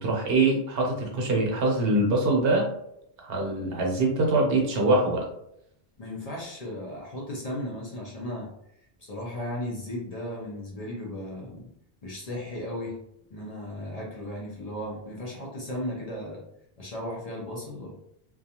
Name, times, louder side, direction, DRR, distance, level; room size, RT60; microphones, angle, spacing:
voice 1, 0.0-2.7 3.2-5.2, right 2 dB, 70° right, -1 dB, 0.9 m, -23 dB
voice 2, 6.0-8.5 9.0-11.7 12.0-13.0 13.3-16.4 16.8-17.9, left 1 dB, 45° left, -3 dB, 0.6 m, -35 dB
2.3 x 2.3 x 2.8 m, 0.76 s
omnidirectional pair, 1.0 m